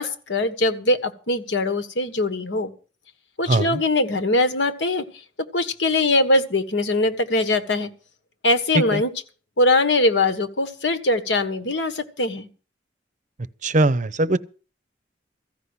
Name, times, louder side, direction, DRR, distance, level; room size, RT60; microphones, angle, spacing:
voice 1, 0.0-2.7 3.4-5.0 5.5-7.9 8.4-9.1 9.6-12.5, left 2 dB, 75° left, 1.4 m, -22 dB
voice 2, 3.5-3.8 8.9-9.0 13.6-14.4, right 2 dB, 45° right, 0.7 m, -20 dB
14.5 x 5.7 x 9.7 m
head